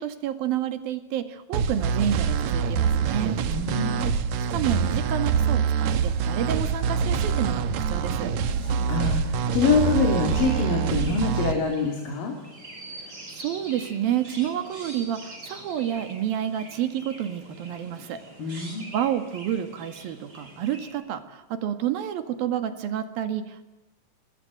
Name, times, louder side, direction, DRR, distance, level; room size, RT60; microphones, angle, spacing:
voice 1, 0.0-3.4 3.7-3.9 4.4-8.3 12.9-18.2 18.5-23.6, right 10 dB, 85° right, 9 dB, 3.6 m, -30 dB
sound 1, 1.5-11.5, right 6 dB, 65° right, 2.2 m, -25 dB
voice 2, 3.5-4.1 8.6-12.3 18.4-18.9, left 4 dB, 70° left, 2 dB, 4.8 m, -25 dB
Chirp tweet, 10.1-20.9, right 1 dB, 25° right, 6.1 m, -44 dB
27.0 x 22.0 x 7.9 m, 0.94 s
omnidirectional pair, 4.1 m